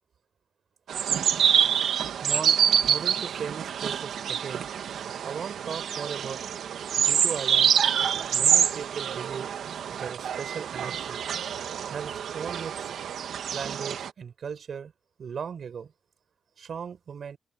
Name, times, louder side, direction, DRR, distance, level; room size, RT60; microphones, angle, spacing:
sound 1, 0.9-14.1, right 8 dB, 75° right, 2.1 m, -26 dB
voice 1, 2.2-4.7 5.2-6.4 7.0-7.7 8.3-9.6 9.9-11.2 11.9-12.9 13.5-14.9 15.2-15.9 16.6-17.4, right 7 dB, 50° right, 4.7 m, -37 dB
open air
wide cardioid pair, 140°, 0 cm